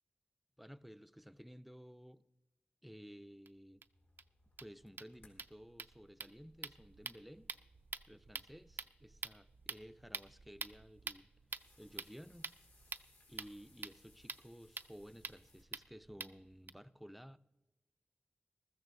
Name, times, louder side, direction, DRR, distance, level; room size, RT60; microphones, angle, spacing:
voice 1, 0.6-2.2 2.8-3.8 4.6-7.5 8.1-11.3 11.8-12.5 13.3-17.4, equal, ahead, 0.5 m, -55 dB
sound 1, 3.5-3.6 3.8-3.9 4.2-4.3 4.5-16.7, right 4 dB, 70° right, 0.5 m, -48 dB
sound 2, 3.9-15.6, left 2 dB, 70° left, 3.9 m, -71 dB
20.5 x 14.0 x 2.7 m
wide cardioid pair, 60°, 4 cm